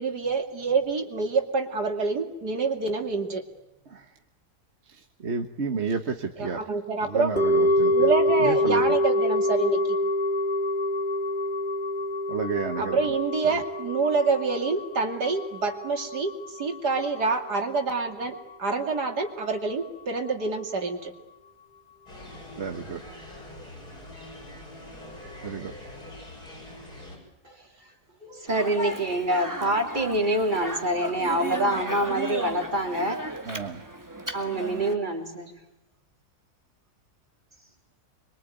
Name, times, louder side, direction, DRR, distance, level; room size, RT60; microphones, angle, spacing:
voice 1, 0.0-3.4 6.4-7.3 7.9-9.8 12.8-21.1, right 4 dB, 80° right, 4 dB, 3.1 m, -27 dB
voice 2, 3.9-4.2 4.9-6.7 7.0-8.1 8.4-9.0 12.3-13.2 13.4-13.6 22.6-23.0 25.4-25.7 33.4-33.8, right 5 dB, 45° right, 5 dB, 1.6 m, -31 dB
sound 1, 7.4-17.6 17.9-18.0, left 1 dB, 30° left, 2.3 m, -26 dB
sound 2, 22.1-27.2, left 1 dB, 75° left, 8.1 m, -43 dB
voice 3, 28.2-33.2 34.3-35.5, right 1 dB, 30° right, 3 dB, 3.7 m, -26 dB
Speech, 28.5-34.9, right 1 dB, 10° right, 2.0 m, -35 dB
26.0 x 23.5 x 9.2 m, 0.91 s
omnidirectional pair, 1.7 m